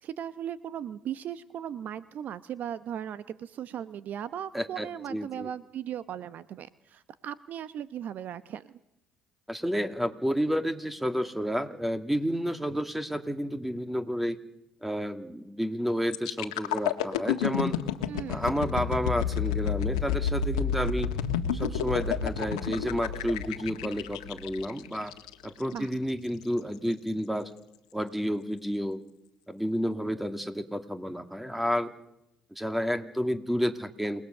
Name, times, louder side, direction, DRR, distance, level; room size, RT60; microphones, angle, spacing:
voice 1, 0.0-8.7 18.1-18.4 25.7-25.9, right 9 dB, 55° right, 14 dB, 1.0 m, -37 dB
voice 2, 4.5-5.5 9.5-14.4 14.8-17.8 18.3-21.1 21.5-25.1 25.4-27.5 27.9-29.0 29.5-31.9 32.5-34.3, equal, 5° right, 9 dB, 2.5 m, -30 dB
sound 1, 16.1-25.9 26.4-26.6, left 8 dB, 85° left, 1.6 m, -30 dB
28.5 x 19.5 x 6.7 m, 0.84 s
hypercardioid pair, 60°, 3 cm